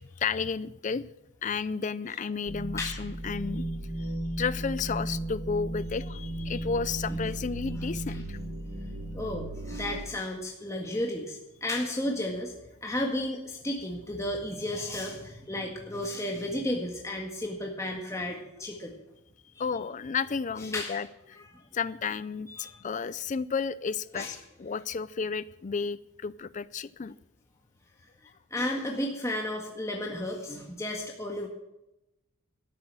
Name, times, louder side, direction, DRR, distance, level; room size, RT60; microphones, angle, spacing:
voice 1, 0.2-1.0 1.4-3.6 4.4-8.4 19.6-21.4 21.7-27.1, left 5 dB, 35° left, 17 dB, 0.4 m, -32 dB
sound 1, 2.5-10.0, right 1 dB, 60° right, 2.6 m, -35 dB
voice 2, 2.8-3.1 7.1-7.2 8.1-8.2 9.1-12.5 12.8-19.0 20.6-21.0 21.5-21.6 22.5-22.8 24.1-24.4 28.5-31.5, left 1 dB, 15° left, 0 dB, 1.6 m, -33 dB
13.0 x 10.5 x 7.5 m, 0.90 s
head